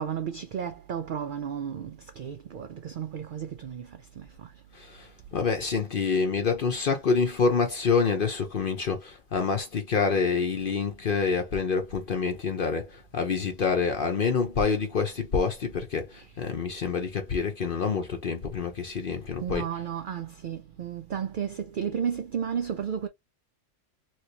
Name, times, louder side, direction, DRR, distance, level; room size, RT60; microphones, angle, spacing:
voice 1, 0.0-3.9 4.2-4.3 19.4-23.1, right 8 dB, 65° right, 0.5 m, -33 dB
voice 2, 4.7-19.7, left 5 dB, 50° left, 0.8 m, -27 dB
3.1 x 2.9 x 2.8 m
omnidirectional pair, 1.4 m